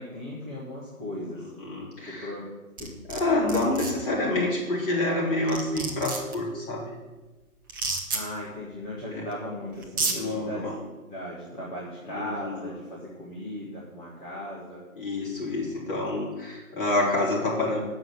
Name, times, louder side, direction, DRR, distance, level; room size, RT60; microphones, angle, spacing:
voice 1, 0.0-1.5 2.1-2.4 2.8-3.0 4.3-4.5 8.1-10.6 11.1-14.8, left 1 dB, 10° left, -7 dB, 1.2 m, -37 dB
voice 2, 1.6-2.3 3.1-6.9 9.1-9.2 10.1-10.8 12.1-12.7 15.0-17.8, left 2 dB, 40° left, -5 dB, 4.2 m, -27 dB
sound 1, 2.8-3.2 3.5-3.9 5.1-5.2 5.5-6.3 7.7-8.2 9.3-9.4 9.8-10.2, right 3 dB, 15° right, 0.7 m, -29 dB
8.1 x 6.4 x 7.9 m, 1.2 s
figure-of-eight pair, 135°, 43 cm